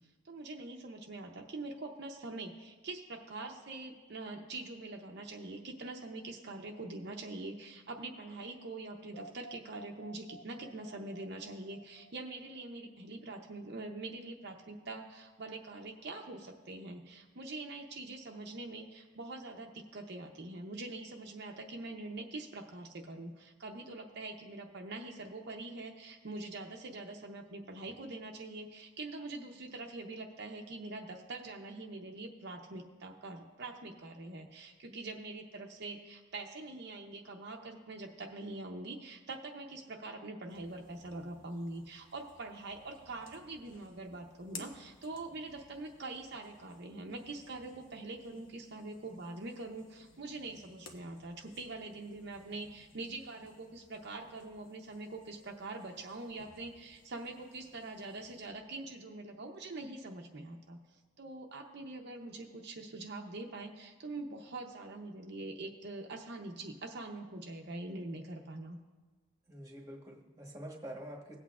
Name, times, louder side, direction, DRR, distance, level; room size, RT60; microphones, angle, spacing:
voice 1, 0.2-60.8 61.2-68.8, right 2 dB, 55° right, 1 dB, 0.7 m, -44 dB
sound 1, 9.1-13.1, right 2 dB, 40° left, 1.2 m, -54 dB
sound 2, 40.5-58.5, left 4 dB, 70° left, 1.0 m, -59 dB
voice 2, 69.5-71.4, right 1 dB, 15° right, 0 dB, 1.2 m, -46 dB
17.5 x 8.2 x 2.4 m, 1.3 s
head